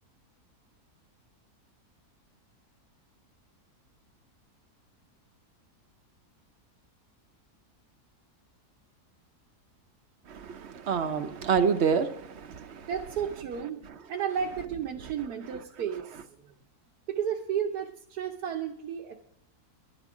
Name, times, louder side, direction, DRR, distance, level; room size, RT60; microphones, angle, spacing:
voice 1, 10.3-12.9, right 6 dB, 55° right, 9 dB, 0.8 m, -28 dB
voice 2, 12.9-16.2 17.1-19.2, right 8 dB, 80° right, 1 dB, 1.3 m, -33 dB
11.5 x 9.8 x 4.9 m, 0.76 s
omnidirectional pair, 1.7 m